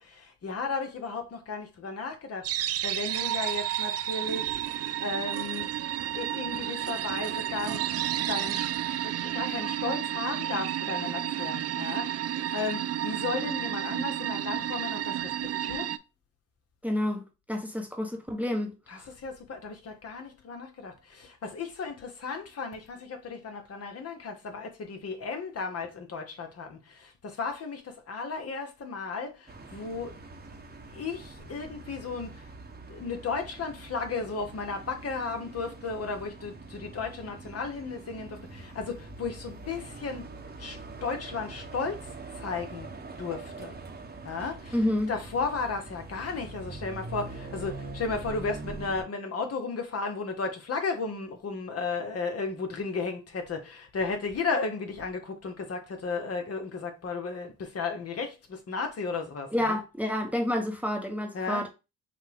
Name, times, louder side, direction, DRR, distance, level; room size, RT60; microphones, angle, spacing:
voice 1, 0.0-4.6 5.0-5.7 6.1-8.7 9.0-15.3 15.6-15.9 18.9-30.1 30.9-32.4 32.9-40.3 40.6-42.9 43.2-43.7 44.2-59.8 61.3-61.6, left 4 dB, 50° left, 1.2 m, -34 dB
sound 1, 2.4-16.0, right 11 dB, 50° right, 0.4 m, -31 dB
voice 2, 16.8-19.0 44.7-45.1 59.5-61.7, left 1 dB, 5° right, 0.9 m, -29 dB
sound 2, 29.5-49.0, right 2 dB, 30° right, 1.1 m, -43 dB
5.6 x 2.3 x 3.5 m
cardioid pair, 75°, 31 cm